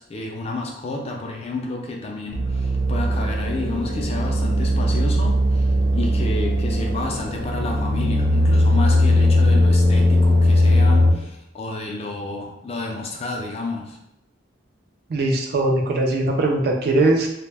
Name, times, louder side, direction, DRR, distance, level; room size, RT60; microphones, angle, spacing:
voice 1, 0.0-14.0, left 2 dB, 30° left, 0 dB, 0.3 m, -30 dB
sound 1, 2.3-11.1, left 1 dB, 70° right, 0.8 m, -19 dB
voice 2, 15.1-17.3, right 2 dB, 50° right, 1 dB, 0.4 m, -20 dB
2.1 x 2.1 x 3.2 m, 0.83 s
head